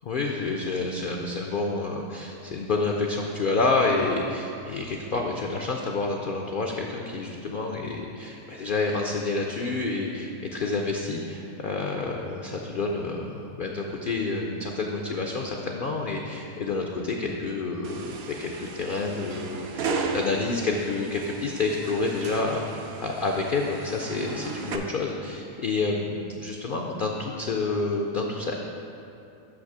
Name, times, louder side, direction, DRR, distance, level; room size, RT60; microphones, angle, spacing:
voice 1, 0.1-28.5, left 3 dB, 65° left, 1 dB, 0.5 m, -29 dB
sound 1, 17.8-24.8, right 4 dB, 60° right, 0.7 m, -35 dB
6.0 x 5.6 x 6.6 m, 2.7 s
omnidirectional pair, 1.5 m